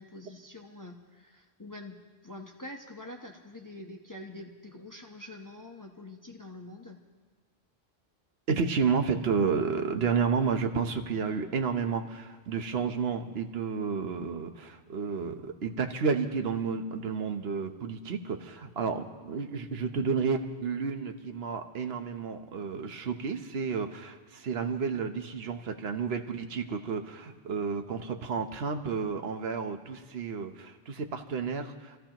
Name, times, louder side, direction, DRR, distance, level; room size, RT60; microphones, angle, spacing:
voice 1, 0.0-7.0, left 2 dB, 20° left, 1 dB, 0.9 m, -45 dB
voice 2, 8.5-32.0, right 5 dB, 70° right, 6 dB, 1.2 m, -31 dB
27.5 x 15.0 x 3.0 m, 1.3 s
omnidirectional pair, 1.1 m